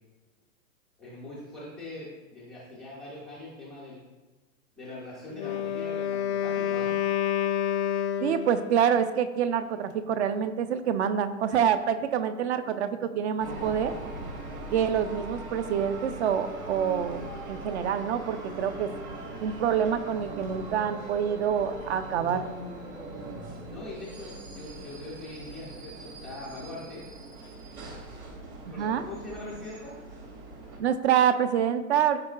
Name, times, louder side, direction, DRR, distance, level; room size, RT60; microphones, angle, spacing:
voice 1, 1.0-4.0 4.8-6.9 23.1-23.2 23.7-27.0 28.7-30.0, left 2 dB, ahead, -10 dB, 0.3 m, -42 dB
Wind instrument woodwind instrument, 5.3-8.8, left 10 dB, 55° left, 0.6 m, -28 dB
voice 2, 8.2-13.9 14.7-18.9 19.4-22.4 28.8-29.0 30.8-32.2, right 8 dB, 55° right, 11 dB, 0.7 m, -26 dB
sound 1, 13.4-30.8, right 2 dB, 85° right, 2.5 m, -41 dB
13.5 x 4.8 x 2.4 m, 1.2 s
hypercardioid pair, 150°, 41 cm